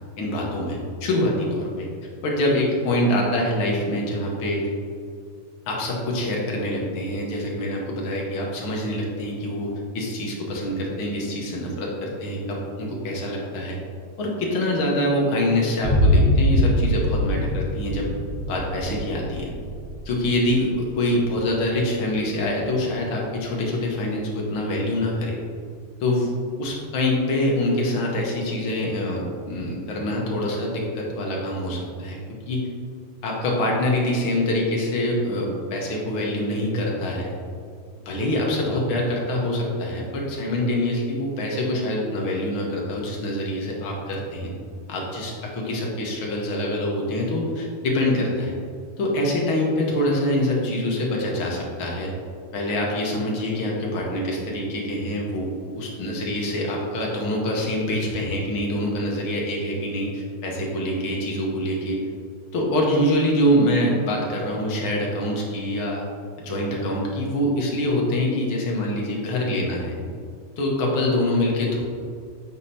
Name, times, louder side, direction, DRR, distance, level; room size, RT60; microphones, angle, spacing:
voice 1, 0.2-1.9 2.2-4.7 5.7-13.8 14.2-18.1 18.5-19.5 20.1-25.4 26.0-26.3 26.6-32.2 32.5-32.7 33.2-37.3 38.1-44.5 44.9-48.5 49.0-52.1 52.5-62.1 62.5-66.0 66.4-69.9 70.6-71.8, left 1 dB, 75° left, -2 dB, 2.0 m, -25 dB
sound 1, 15.8-23.2, equal, 75° right, 2.7 m, -24 dB
8.1 x 5.3 x 2.8 m, 2.3 s
omnidirectional pair, 2.4 m